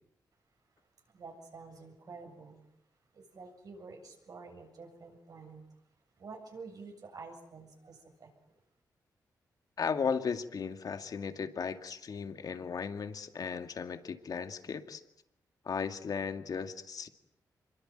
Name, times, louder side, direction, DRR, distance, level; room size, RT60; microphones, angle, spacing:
voice 1, 0.8-2.6 3.1-5.7 6.2-8.3, right 4 dB, 60° right, 3 dB, 7.6 m, -49 dB
voice 2, 9.8-15.0 15.6-17.1, left 6 dB, 60° left, 8 dB, 2.2 m, -36 dB
26.5 x 23.0 x 9.1 m, 0.79 s
cardioid pair, 90°, 7 cm